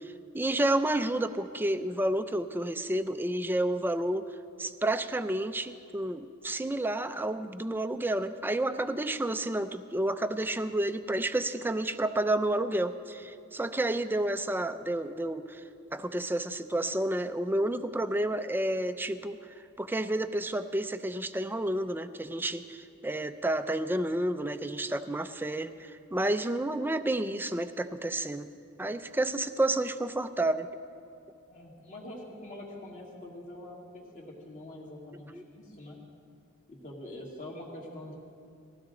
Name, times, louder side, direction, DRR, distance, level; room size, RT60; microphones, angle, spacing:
voice 1, 0.0-4.3 4.6-15.6 15.9-19.4 19.8-28.5 28.8-30.7 35.3-35.4, right 1 dB, 10° right, 10 dB, 0.5 m, -30 dB
voice 2, 31.5-36.0 36.7-38.2, left 1 dB, 35° left, -2 dB, 2.5 m, -44 dB
19.5 x 15.5 x 3.9 m, 2.5 s
head